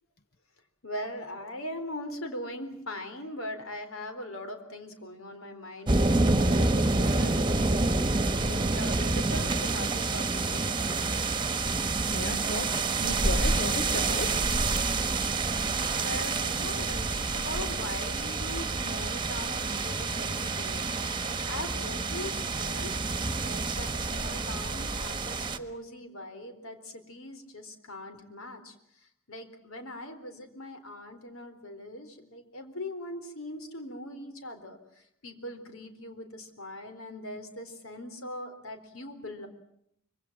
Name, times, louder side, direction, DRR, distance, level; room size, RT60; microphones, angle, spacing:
voice 1, 0.8-8.0 8.4-11.0 15.9-28.8 29.3-34.8 35.2-39.5, left 1 dB, 75° left, 4.1 m, -41 dB
sound 1, 5.9-25.6, right 3 dB, 20° right, 1.6 m, -28 dB
voice 2, 12.1-14.5, left 3 dB, 50° left, 1.0 m, -36 dB
25.0 x 24.5 x 7.4 m
head